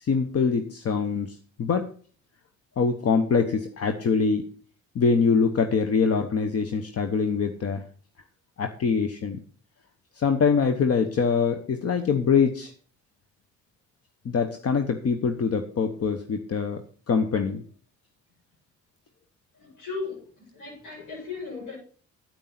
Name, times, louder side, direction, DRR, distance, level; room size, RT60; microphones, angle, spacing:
voice 1, 0.0-1.9 2.8-4.5 4.9-7.8 8.6-9.4 10.2-12.7 14.2-16.8 17.1-17.6, left 5 dB, 55° left, 7 dB, 1.1 m, -24 dB
voice 2, 19.6-21.8, left 4 dB, 85° left, -8 dB, 7.6 m, -36 dB
9.3 x 9.0 x 5.9 m, 0.43 s
cardioid pair, 90°, 30 cm